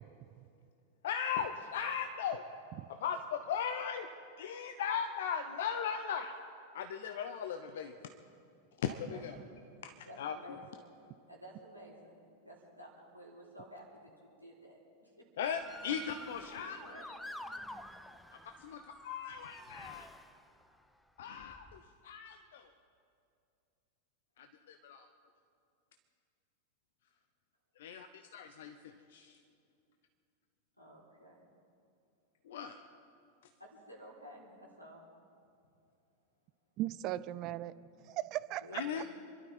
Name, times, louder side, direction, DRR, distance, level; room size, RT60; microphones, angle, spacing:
voice 1, 1.0-2.4 3.0-4.1 4.4-6.4 6.7-8.1 8.8-9.4 9.8-9.9 10.2-10.4 15.4-16.8 18.6-20.1 21.2-22.7 24.4-25.1 27.8-29.4 32.4-32.8 38.7-39.1, left 7 dB, 55° left, 7 dB, 0.8 m, -38 dB
voice 2, 9.1-9.5 10.1-10.8 11.3-15.3 16.4-17.2 30.8-31.4 33.6-35.0 38.6-39.2, equal, 90° left, -2 dB, 3.7 m, -53 dB
Motor vehicle (road) / Siren, 15.5-20.7 21.4-21.8, left 1 dB, 5° left, 0.7 m, -49 dB
voice 3, 36.8-37.7 38.0-39.0, right 14 dB, 40° right, 16 dB, 0.5 m, -37 dB
27.5 x 12.0 x 4.3 m, 2.4 s
figure-of-eight pair, 90°, 0 cm